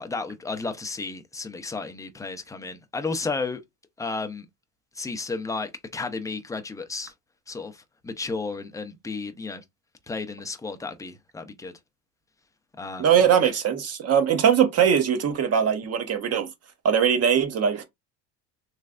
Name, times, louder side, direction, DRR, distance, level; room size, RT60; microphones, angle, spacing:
voice 1, 0.0-3.6 4.0-4.5 5.0-7.1 7.5-9.6 10.1-11.7 12.8-13.1, left 3 dB, 10° left, 0.5 m, -33 dB
voice 2, 13.0-16.5 16.8-17.8, right 8 dB, 40° right, 0.9 m, -21 dB
3.3 x 3.2 x 2.4 m
supercardioid pair, 110°, 39 cm